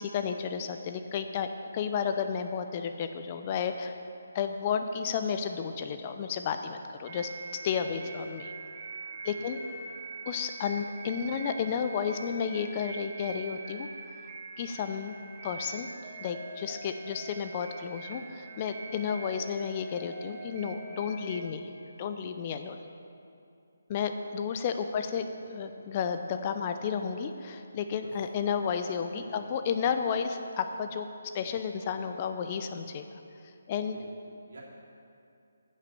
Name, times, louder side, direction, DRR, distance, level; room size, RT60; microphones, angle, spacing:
voice 1, 0.0-1.5 1.7-4.0 4.3-7.3 7.6-8.5 9.2-9.6 10.3-13.9 14.6-15.2 15.4-21.7 22.0-22.8 23.9-33.0 33.7-34.0, left 7 dB, 30° left, 7 dB, 0.5 m, -32 dB
sound 1, 7.0-21.4, right 3 dB, 35° right, 1.3 m, -44 dB
voice 2, 9.1-9.7 24.9-25.3 27.9-28.2 29.3-29.5 33.9-34.6, right 2 dB, 65° right, -4 dB, 3.1 m, -53 dB
9.9 x 7.4 x 7.0 m, 2.5 s
figure-of-eight pair, 155°, 0 cm